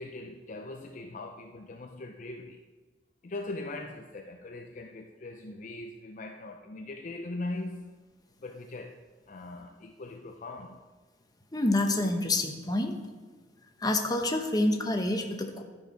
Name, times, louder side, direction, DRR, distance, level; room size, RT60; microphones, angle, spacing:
voice 1, 0.0-2.6 3.2-7.9 8.4-9.0 9.3-10.8, left 2 dB, 45° left, 0.5 m, -40 dB
voice 2, 11.5-12.9 13.8-15.6, left 2 dB, 20° left, 0.9 m, -27 dB
12.0 x 4.6 x 5.7 m
head